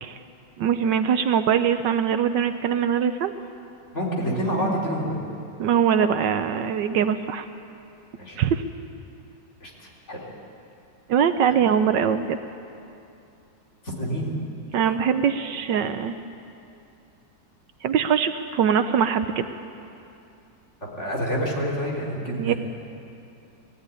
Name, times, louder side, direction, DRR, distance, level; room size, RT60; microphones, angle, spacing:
voice 1, 0.6-3.3 5.6-7.5 8.4-8.6 11.1-12.4 14.7-16.1 17.8-19.5 22.3-22.5, right 8 dB, 70° right, 9 dB, 1.3 m, -22 dB
voice 2, 3.9-5.2 8.2-8.4 9.6-10.2 13.8-14.3 21.0-22.5, equal, 35° left, -3 dB, 4.1 m, -27 dB
21.0 x 15.0 x 9.9 m, 2.7 s
omnidirectional pair, 2.1 m